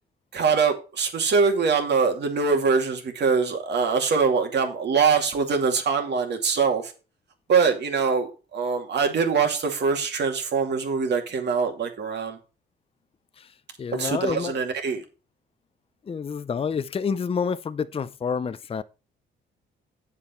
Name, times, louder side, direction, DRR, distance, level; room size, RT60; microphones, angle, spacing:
voice 1, 0.3-6.9 7.5-12.4 13.9-15.0, right 5 dB, 60° right, 2.3 m, -23 dB
voice 2, 13.8-14.5 16.1-18.8, left 6 dB, 30° left, 0.5 m, -28 dB
8.4 x 7.2 x 4.3 m
cardioid pair, 90°, 20 cm